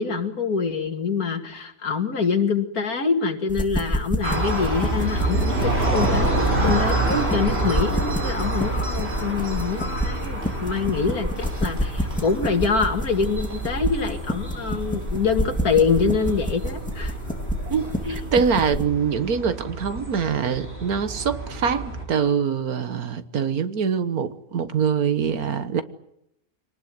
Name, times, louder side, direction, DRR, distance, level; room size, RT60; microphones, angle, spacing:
voice 1, 0.0-17.1 18.1-18.2, left 5 dB, 80° left, 2.7 m, -25 dB
sound 1, 3.5-18.9, equal, 5° left, 2.6 m, -29 dB
sound 2, 4.2-22.1, right 2 dB, 40° right, 5.6 m, -28 dB
voice 2, 17.7-25.8, right 6 dB, 80° right, 1.8 m, -24 dB
24.5 x 19.0 x 9.4 m
omnidirectional pair, 1.6 m